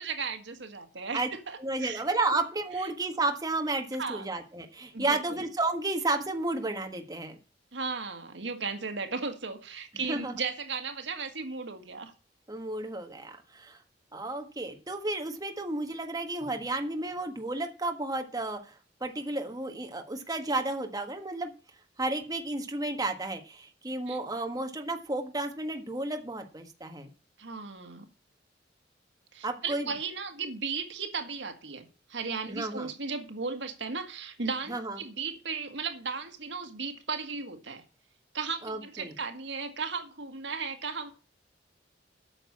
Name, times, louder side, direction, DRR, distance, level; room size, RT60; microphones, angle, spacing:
voice 1, 0.0-2.0 2.8-2.9 4.0-4.3 4.9-5.4 7.7-12.1 24.1-24.2 27.4-28.1 29.3-37.8 38.3-41.1, right 5 dB, 80° right, 1.7 m, -36 dB
voice 2, 1.6-7.4 10.1-10.3 12.5-13.8 14.1-18.7 19.0-21.5 22.0-27.1 29.4-29.9 32.5-32.9 34.7-35.0 38.6-39.1, right 2 dB, 20° right, 1.6 m, -32 dB
9.0 x 6.7 x 8.5 m
head